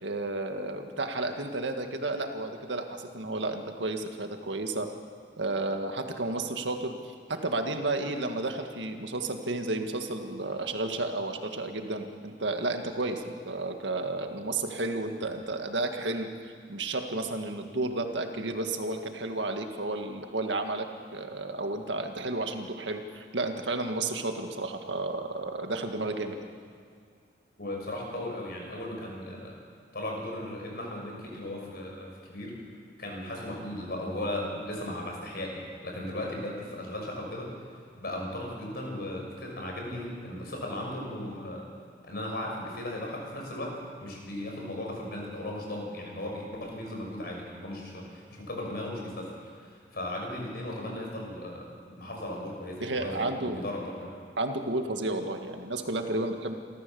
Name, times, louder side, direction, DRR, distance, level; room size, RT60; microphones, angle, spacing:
voice 1, 0.0-4.9 5.4-20.9 21.1-26.4 52.8-53.6 54.4-56.5, right 2 dB, 85° right, 5 dB, 1.9 m, -32 dB
voice 2, 27.6-29.6 29.9-32.6 33.0-37.5 38.0-41.7 42.0-54.1, left 1 dB, 60° left, 0 dB, 5.9 m, -37 dB
26.5 x 14.5 x 7.0 m, 2.3 s
head